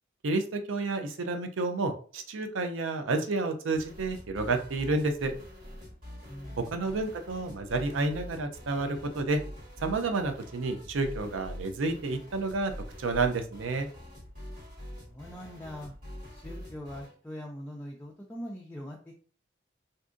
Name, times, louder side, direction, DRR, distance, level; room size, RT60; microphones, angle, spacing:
voice 1, 0.2-5.3 6.6-9.4 9.8-12.7 13.0-13.9, right 3 dB, 85° right, 7 dB, 0.5 m, -30 dB
sound 1, 3.7-17.1, equal, 50° right, 1.5 m, -45 dB
voice 2, 6.3-7.1 15.0-15.9 16.3-19.1, equal, 10° left, -3 dB, 0.3 m, -42 dB
3.5 x 2.6 x 2.5 m, 0.43 s
head